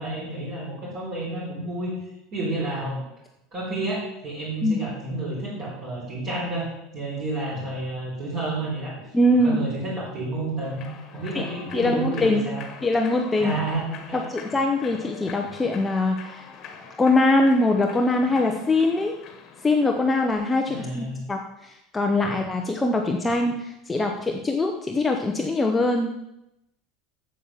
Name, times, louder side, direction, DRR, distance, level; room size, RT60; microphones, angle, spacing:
voice 1, 0.0-1.9 2.3-3.0 3.5-6.7 6.9-8.9 9.3-10.9 11.1-12.6 13.4-14.3 20.7-21.2 22.2-22.3 23.9-24.0, right 2 dB, 30° right, -8 dB, 3.9 m, -30 dB
voice 2, 9.1-9.6 11.3-11.5 11.7-12.5 12.8-13.5 14.1-16.5 17.0-19.2 19.6-26.1, left 2 dB, 10° left, 2 dB, 0.7 m, -22 dB
Human voice / Clapping / Cheering, 10.6-20.3, left 6 dB, 30° left, 1.5 m, -43 dB
8.5 x 7.4 x 7.2 m, 0.87 s
cardioid pair, 170°, 0 cm